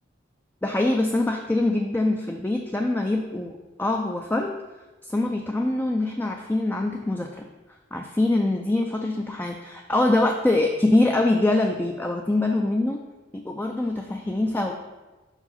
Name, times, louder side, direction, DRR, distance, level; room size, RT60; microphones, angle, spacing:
voice 1, 0.6-4.6 5.0-7.5 7.9-13.0 13.3-14.8, left 2 dB, 10° left, 2 dB, 0.3 m, -24 dB
5.5 x 4.8 x 5.4 m, 1.2 s
head